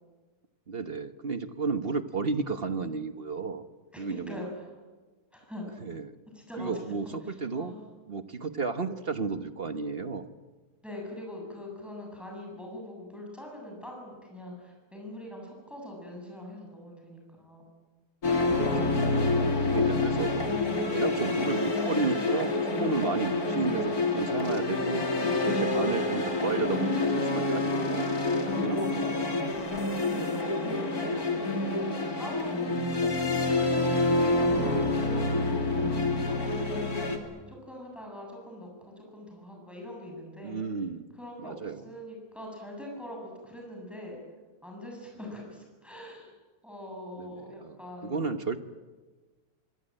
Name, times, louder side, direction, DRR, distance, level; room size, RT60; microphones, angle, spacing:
voice 1, 0.7-3.7 4.0-4.4 5.8-6.2 6.6-7.7 8.1-10.3 18.5-19.0 19.6-20.3 20.9-29.2 32.9-33.2 40.4-41.1 41.4-41.9 47.2-47.8 48.0-48.6, right 4 dB, 35° right, 9 dB, 1.1 m, -33 dB
voice 2, 3.9-4.8 5.3-5.7 6.3-6.7 7.2-7.8 10.8-17.7 28.7-29.6 30.1-33.5 33.9-36.4 36.7-40.6 41.1-44.2 44.6-46.3 46.6-48.6, left 1 dB, ahead, 0 dB, 7.6 m, -43 dB
sound 1, 18.2-37.2, left 2 dB, 45° left, 3.4 m, -27 dB
26.0 x 25.5 x 8.9 m, 1.3 s
omnidirectional pair, 2.3 m